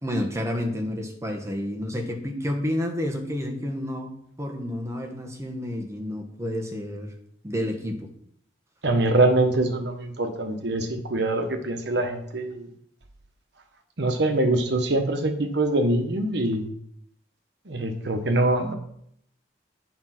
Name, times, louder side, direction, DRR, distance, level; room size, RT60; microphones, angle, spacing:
voice 1, 0.0-7.1 7.4-8.1, left 1 dB, 15° right, 3 dB, 1.2 m, -30 dB
voice 2, 8.8-12.7 14.0-16.6 17.7-18.7, right 2 dB, 65° right, 6 dB, 1.1 m, -24 dB
8.7 x 4.6 x 5.9 m, 0.71 s
head